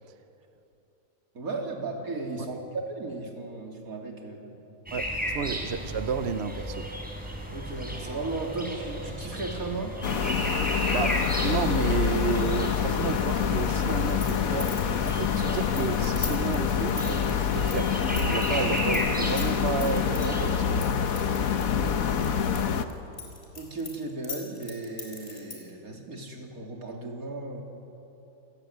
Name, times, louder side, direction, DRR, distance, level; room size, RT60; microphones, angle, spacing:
voice 1, 1.3-2.6 2.8-4.8 7.5-10.0 23.6-27.6, right 3 dB, 70° right, 1 dB, 3.4 m, -36 dB
sound 1, 4.9-20.8, equal, 5° right, 4.0 m, -35 dB
voice 2, 4.9-6.9 10.9-14.8 15.1-20.9, right 6 dB, 55° right, 10 dB, 0.9 m, -32 dB
sound 2, 10.0-22.8, left 7 dB, 70° left, 1.5 m, -26 dB
sound 3, 13.9-19.0 19.3-20.3 20.8-22.6 22.9-25.7, left 4 dB, 35° left, 4.7 m, -38 dB
28.0 x 16.0 x 9.4 m, 2.9 s
omnidirectional pair, 1.5 m